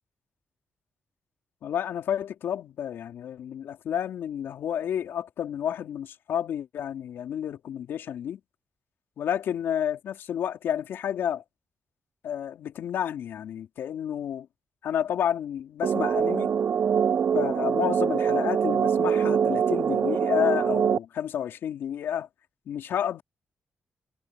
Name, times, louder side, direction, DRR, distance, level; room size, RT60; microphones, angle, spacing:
voice 1, 1.6-8.4 9.2-11.4 12.2-14.5 14.8-16.6 17.3-22.3 22.7-23.2, left 9 dB, 80° left, 3.7 m, -30 dB
sound 1, 15.8-21.0, right 7 dB, 60° right, 0.5 m, -24 dB
cardioid pair, 65°, 4 cm